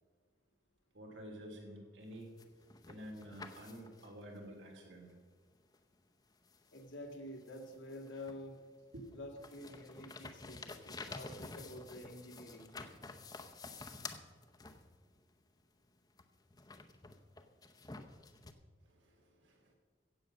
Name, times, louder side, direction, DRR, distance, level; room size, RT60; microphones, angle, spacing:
voice 1, 0.9-2.3 2.9-5.1 8.9-9.1 18.8-19.7, equal, 80° right, 1 dB, 3.2 m, -50 dB
sound 1, 2.1-4.2 5.7-5.8 6.5-8.6 9.0-15.2 16.2-18.5, left 3 dB, 20° left, 0.7 m, -50 dB
voice 2, 6.7-8.6 9.1-12.8, left 1 dB, 85° left, 3 dB, 2.0 m, -49 dB
15.5 x 7.9 x 6.4 m, 1.6 s
head